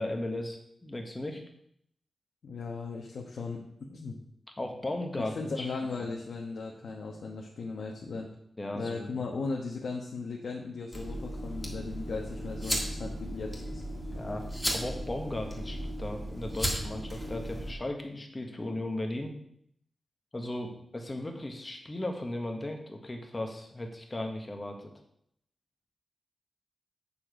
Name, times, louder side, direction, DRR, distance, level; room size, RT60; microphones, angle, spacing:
voice 1, 0.0-1.4 4.6-5.7 6.0-6.1 8.6-9.2 14.1-14.5 14.7-19.3 20.3-24.9, left 1 dB, 20° left, 3 dB, 1.4 m, -36 dB
voice 2, 2.4-3.6 3.9-4.2 5.4-8.3 8.7-13.8, left 4 dB, 70° left, -1 dB, 1.2 m, -37 dB
sound 1, 10.9-17.7, equal, 5° left, 2.0 m, -35 dB
8.8 x 7.2 x 5.0 m, 0.72 s
wide cardioid pair, 150°, 0 cm